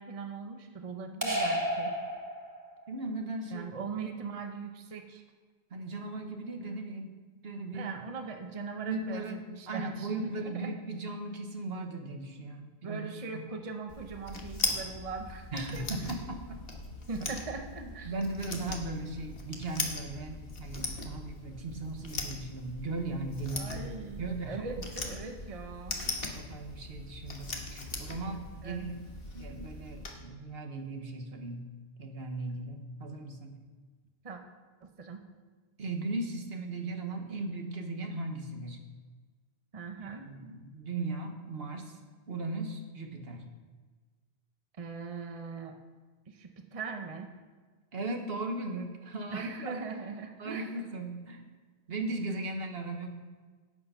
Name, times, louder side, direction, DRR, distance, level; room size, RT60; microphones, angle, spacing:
voice 1, 0.0-1.9 3.5-5.2 7.7-10.1 10.4-10.7 12.8-16.1 17.1-18.1 23.5-26.0 28.6-28.9 34.2-34.4 34.8-35.2 39.7-40.3 44.8-45.8 46.3-47.3 49.3-50.7, right 4 dB, 35° right, 5 dB, 0.9 m, -40 dB
sound 1, 1.2-2.9, equal, 20° right, 1.3 m, -32 dB
voice 2, 2.9-3.7 3.9-4.0 5.7-7.1 7.4-7.9 8.8-9.4 9.7-13.0 13.3-13.4 15.5-16.6 17.8-24.9 26.3-29.0 29.3-31.7 32.0-33.5 35.8-38.8 40.0-42.0 42.3-43.5 47.9-49.8 50.4-51.4 51.9-53.1, right 2 dB, 65° right, 4 dB, 1.4 m, -37 dB
sound 2, 13.9-30.1, left 3 dB, 65° left, 1.5 m, -40 dB
11.0 x 8.5 x 5.7 m, 1.4 s
omnidirectional pair, 1.1 m